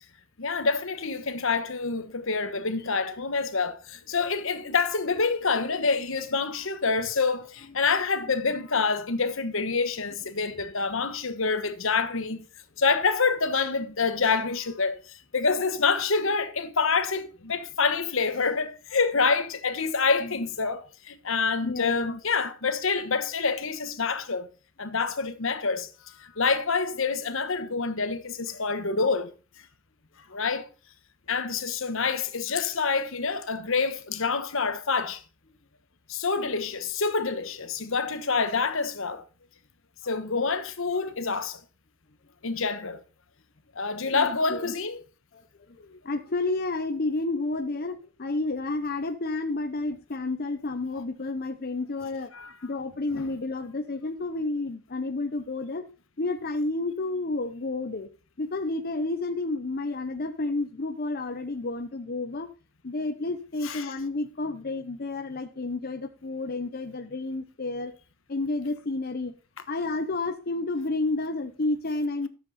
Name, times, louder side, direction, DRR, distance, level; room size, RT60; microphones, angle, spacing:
voice 1, 0.4-12.4 12.8-24.5 24.8-25.9 26.2-29.3 30.3-30.7 31.3-35.2 36.1-39.2 40.0-41.6 42.4-43.0 43.7-45.0 52.3-52.5 53.1-53.3 63.6-63.9, left 4 dB, 60° left, 1.2 m, -27 dB
voice 2, 2.8-3.1 20.2-20.3 21.6-22.2 44.1-44.7 45.3-45.4 45.7-52.3 52.6-55.9 56.2-58.1 58.4-62.5 62.8-67.9 68.3-69.3 69.7-72.3, left 2 dB, 45° left, 0.8 m, -31 dB
13.0 x 7.8 x 4.2 m
head